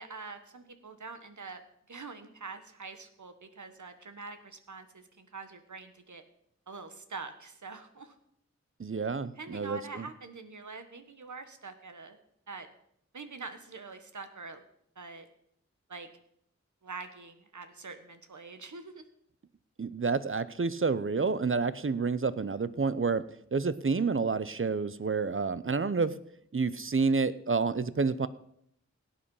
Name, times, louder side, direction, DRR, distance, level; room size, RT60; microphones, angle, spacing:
voice 1, 0.0-1.6 1.9-6.2 6.7-8.1 9.4-12.2 12.5-12.7 13.1-14.6 15.0-15.3 15.9-16.1 16.8-19.0, right 4 dB, 85° right, 9 dB, 1.4 m, -45 dB
voice 2, 8.8-10.1 19.8-23.2 23.5-26.1 26.5-28.3, right 4 dB, 45° right, 15 dB, 0.7 m, -29 dB
17.0 x 8.8 x 5.6 m, 0.71 s
wide cardioid pair, 55°, 29 cm